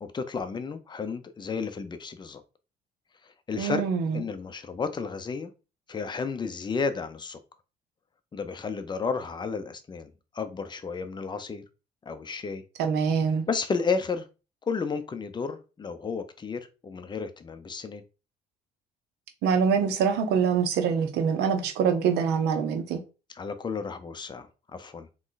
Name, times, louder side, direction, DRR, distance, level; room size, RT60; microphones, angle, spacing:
voice 1, 0.0-2.4 3.2-3.8 4.1-5.5 5.9-7.4 8.3-10.1 10.3-11.6 12.1-12.6 13.5-14.3 14.7-18.0 23.3-25.1, left 5 dB, 25° left, 0.7 m, -32 dB
voice 2, 3.6-4.2 12.8-13.4 19.4-23.0, right 6 dB, 80° right, 0.9 m, -24 dB
3.8 x 3.1 x 3.9 m
cardioid pair, 110°, 17 cm